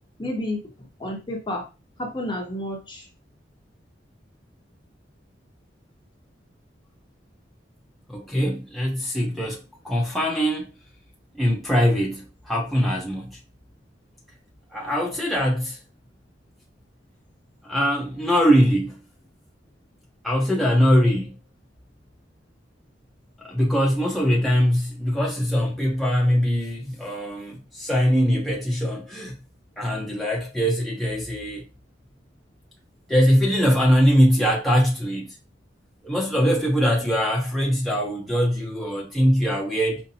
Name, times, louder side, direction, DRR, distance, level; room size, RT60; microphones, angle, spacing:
voice 1, 0.2-0.6 1.0-1.7 2.0-3.0, left 1 dB, 25° left, 0.9 m, -30 dB
voice 2, 8.1-9.6 9.8-10.7 11.3-13.4 14.7-15.8 17.6-19.0 20.2-21.4 23.4-29.4 29.8-31.6 33.1-35.3 36.0-40.0, equal, ahead, 0.8 m, -22 dB
5.3 x 2.1 x 2.8 m
head